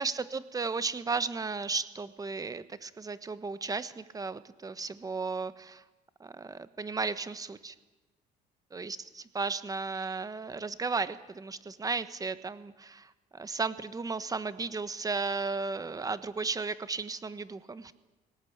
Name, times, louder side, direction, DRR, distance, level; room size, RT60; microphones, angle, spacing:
voice 1, 0.0-5.8 6.2-7.7 8.7-17.9, right 4 dB, 20° right, 13 dB, 1.2 m, -34 dB
21.0 x 18.5 x 8.8 m, 1.2 s
cardioid pair, 110°, 17 cm